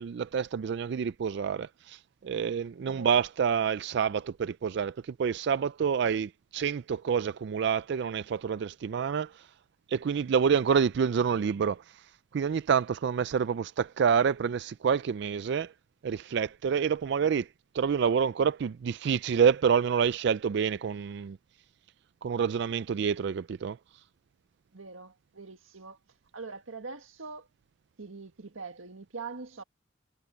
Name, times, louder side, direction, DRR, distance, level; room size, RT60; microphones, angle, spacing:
voice 1, 0.0-9.5 9.9-15.7 16.0-17.5 17.7-21.4 22.2-23.8, right 7 dB, 60° right, 0.3 m, -28 dB
voice 2, 2.9-3.2 24.7-26.0 26.3-27.5 28.0-29.6, right 4 dB, 85° right, 1.8 m, -43 dB
head